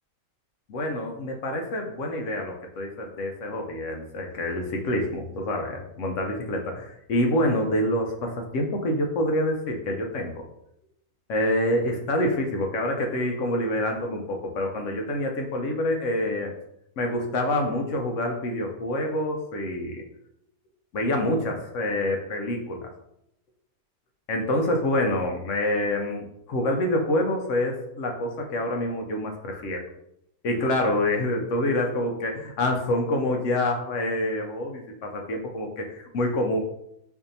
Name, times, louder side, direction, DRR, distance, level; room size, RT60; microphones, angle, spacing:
voice 1, 0.7-10.5 11.3-16.5 17.0-20.0 20.9-22.9 24.3-29.9 30.4-36.6, left 1 dB, 65° left, 2 dB, 0.8 m, -27 dB
4.5 x 2.6 x 2.6 m, 0.77 s
omnidirectional pair, 1.6 m